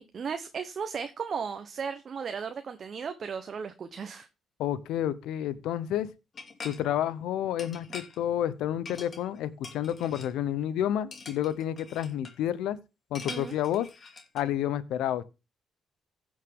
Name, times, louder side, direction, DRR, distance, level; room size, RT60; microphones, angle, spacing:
voice 1, 0.0-4.3 13.3-13.5, right 6 dB, 50° right, 1.0 m, -35 dB
voice 2, 4.6-6.1 6.6-12.8 13.1-13.9 14.3-15.2, left 11 dB, 90° left, 0.8 m, -30 dB
sound 1, 6.3-6.8 7.6-8.2 8.8-9.4 9.6-10.3 11.1-12.4 13.1-14.4, left 4 dB, 40° left, 2.5 m, -44 dB
15.5 x 6.4 x 3.7 m
cardioid pair, 90°, 0 cm